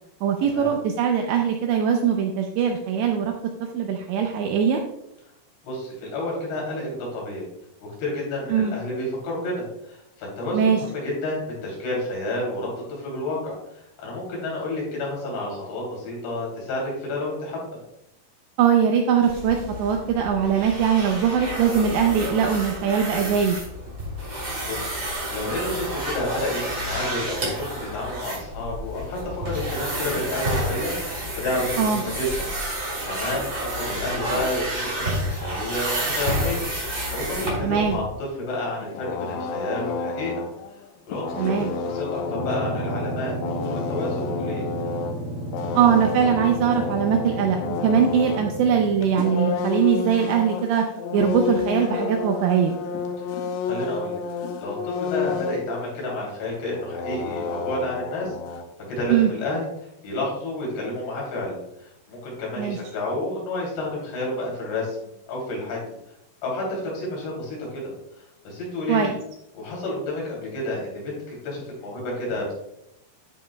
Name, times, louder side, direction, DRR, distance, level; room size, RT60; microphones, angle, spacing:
voice 1, 0.2-3.3 3.7-4.8 8.5-8.7 10.5-10.8 18.6-23.6 31.8-32.0 37.6-38.0 41.4-41.7 45.8-50.8 51.1-52.8 59.1-59.3 62.6-62.8 68.9-69.1, right 7 dB, 85° right, 3 dB, 2.6 m, -21 dB
voice 2, 5.6-7.5 7.8-17.6 24.3-24.4 24.6-24.9 25.3-32.8 33.0-36.7 37.1-40.3 41.1-41.6 41.8-44.7 53.2-53.3 53.6-54.2 54.6-58.6 58.9-65.8 66.4-67.8 68.4-69.1 69.5-72.5, left 1 dB, 65° left, -3 dB, 4.9 m, -30 dB
sound 1, 19.2-38.0, right 1 dB, 20° right, 2.5 m, -30 dB
sound 2, 38.8-40.9 41.1-45.2 45.5-48.5 49.0-55.7 56.1-56.2 56.4-58.6, left 4 dB, 85° left, 3.4 m, -30 dB
sound 3, 42.1-49.5, right 1 dB, 50° right, 3.5 m, -33 dB
10.5 x 7.3 x 2.2 m, 0.82 s
omnidirectional pair, 5.7 m